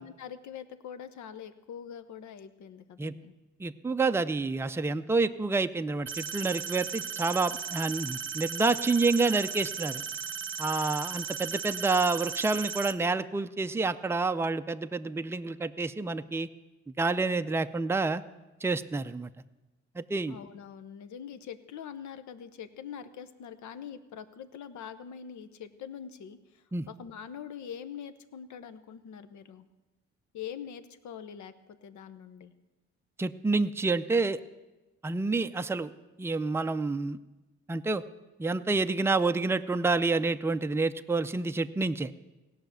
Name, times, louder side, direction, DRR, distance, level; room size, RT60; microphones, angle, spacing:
voice 1, 0.0-3.3 20.3-29.7 30.3-32.5, left 8 dB, 70° left, 12 dB, 0.9 m, -44 dB
voice 2, 3.6-10.0 10.6-16.5 17.0-18.2 18.6-19.3 20.0-20.4 26.7-26.9 33.2-34.4 35.0-35.9 36.2-37.2 37.7-38.0 38.4-42.1, right 3 dB, 10° right, 9 dB, 0.5 m, -28 dB
sound 1, 6.1-12.9, right 7 dB, 40° right, 0.8 m, -36 dB
17.0 x 5.9 x 9.1 m, 1.1 s
cardioid pair, 90°, 30 cm